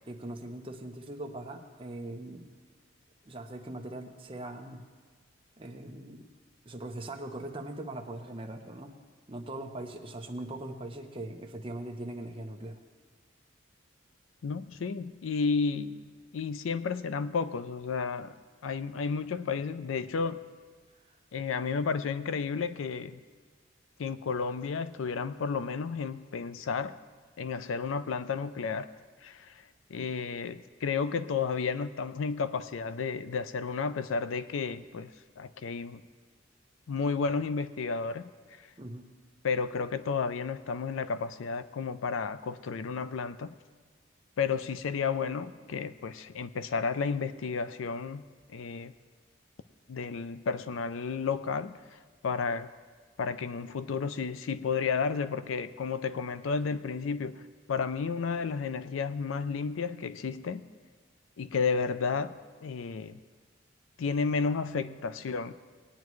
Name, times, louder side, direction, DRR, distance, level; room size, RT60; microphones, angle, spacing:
voice 1, 0.1-2.5 3.2-4.8 5.6-6.3 6.6-8.9 9.3-12.8 38.8-39.1, right 1 dB, 25° right, 3 dB, 0.8 m, -40 dB
voice 2, 14.4-16.0 16.3-18.4 18.6-20.5 21.3-23.1 24.0-27.0 27.4-28.9 29.2-29.5 29.9-36.0 36.9-38.3 39.4-43.5 44.4-48.9 49.9-51.8 52.2-52.7 53.2-60.6 61.4-63.2 64.0-65.5, left 5 dB, 85° left, 13 dB, 0.4 m, -32 dB
19.5 x 9.5 x 3.1 m, 1.5 s
head